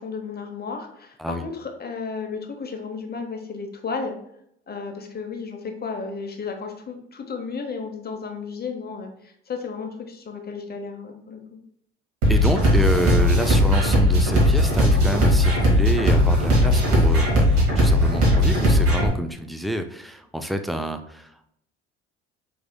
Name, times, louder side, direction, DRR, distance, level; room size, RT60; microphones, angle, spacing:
voice 1, 0.0-4.1 4.7-11.6, left 5 dB, 30° left, 4 dB, 0.9 m, -33 dB
sound 1, 12.2-19.1, equal, 75° right, 1.4 m, -18 dB
voice 2, 12.3-21.5, equal, ahead, 7 dB, 0.4 m, -28 dB
4.8 x 3.5 x 2.2 m, 0.73 s
hypercardioid pair, 60°, 33 cm